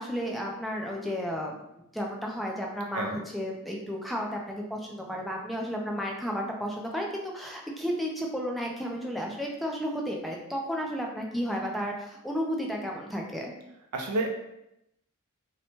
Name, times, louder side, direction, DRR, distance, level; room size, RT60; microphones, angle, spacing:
voice 1, 0.0-13.5, equal, ahead, -1 dB, 0.3 m, -33 dB
voice 2, 13.9-14.3, right 2 dB, 85° right, 2 dB, 0.5 m, -29 dB
2.7 x 2.1 x 2.9 m, 0.84 s
head